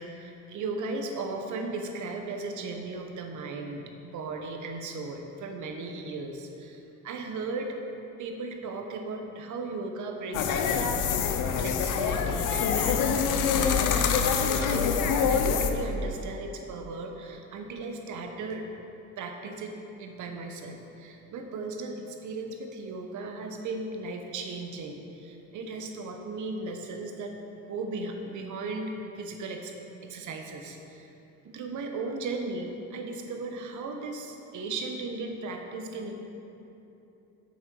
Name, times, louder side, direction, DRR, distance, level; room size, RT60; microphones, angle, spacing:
voice 1, 0.0-7.8 8.2-11.1 11.3-13.9 14.5-14.9 15.2-18.7 19.2-27.3 27.7-29.7 30.0-31.1 31.5-36.1, right 3 dB, 75° right, 4 dB, 1.0 m, -36 dB
sound 1, 10.3-15.7, left 6 dB, 90° left, 0.7 m, -25 dB
7.8 x 6.3 x 5.4 m, 3.0 s
cardioid pair, 90°, 30 cm